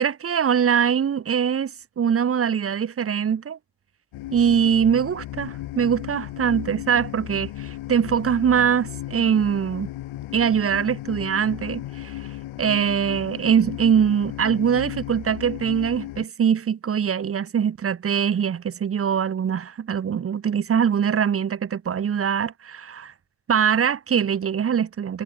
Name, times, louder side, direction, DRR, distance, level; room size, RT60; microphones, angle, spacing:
voice 1, 0.0-3.6 4.3-9.9 10.3-12.3 12.6-23.1 23.5-25.2, right 8 dB, 30° right, 0.9 m, -22 dB
sound 1, 4.1-16.3, left 15 dB, 75° left, 3.7 m, -35 dB
cardioid pair, 130°, 48 cm